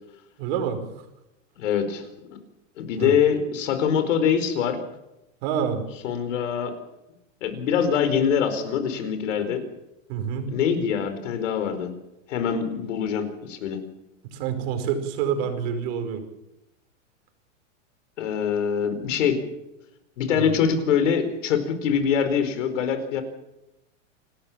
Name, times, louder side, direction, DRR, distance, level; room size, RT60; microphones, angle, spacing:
voice 1, 0.4-0.8 3.0-3.1 5.4-5.8 10.1-10.6 14.2-16.2 20.3-20.5, right 7 dB, 50° right, 7 dB, 5.2 m, -27 dB
voice 2, 1.6-2.4 2.8-4.8 6.0-6.8 7.4-9.6 10.5-11.9 12.3-13.8 18.2-19.4 20.2-23.2, left 7 dB, 70° left, 9 dB, 4.6 m, -24 dB
28.0 x 13.5 x 7.5 m, 0.90 s
hypercardioid pair, 135°, 38 cm